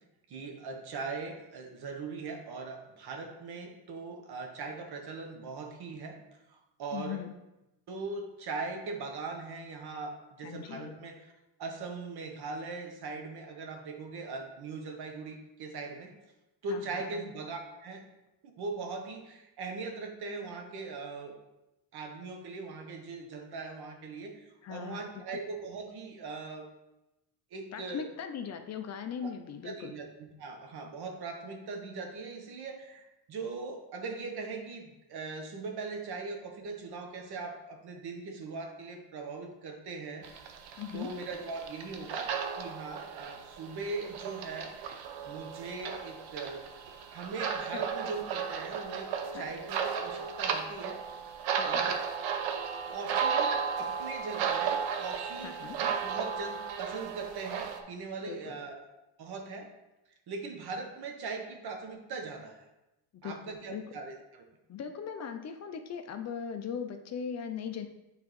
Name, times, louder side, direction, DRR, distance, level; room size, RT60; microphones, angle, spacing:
voice 1, 0.3-6.2 6.5-7.2 7.9-11.2 11.6-16.2 16.6-18.0 18.4-21.4 21.9-26.7 27.5-28.0 29.2-29.3 29.6-40.3 40.9-46.7 47.1-51.0 51.6-52.0 52.9-58.8 59.2-59.7 60.3-62.6 63.2-64.5, right 4 dB, 55° right, 3 dB, 1.2 m, -40 dB
voice 2, 6.9-7.3 10.4-11.0 16.7-17.2 24.6-25.2 27.7-29.9 40.8-41.1 47.7-47.8 49.3-49.5 51.6-51.9 55.4-55.8 58.3-58.4 63.1-63.9 64.7-67.9, left 7 dB, 35° left, 7 dB, 0.5 m, -39 dB
sound 1, 40.2-57.8, right 7 dB, 75° right, 0.8 m, -34 dB
9.0 x 3.7 x 3.1 m, 0.95 s
cardioid pair, 115°, 47 cm